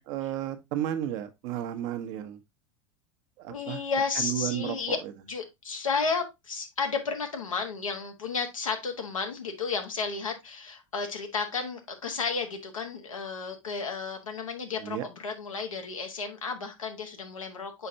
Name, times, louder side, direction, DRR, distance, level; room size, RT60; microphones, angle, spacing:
voice 1, 0.0-2.4 3.4-3.8 4.2-5.0 14.8-15.0, right 11 dB, 50° right, 1.0 m, -33 dB
voice 2, 3.5-5.0 5.3-17.9, left 4 dB, 85° left, 1.5 m, -32 dB
6.8 x 5.1 x 2.7 m
figure-of-eight pair, 85°, 17 cm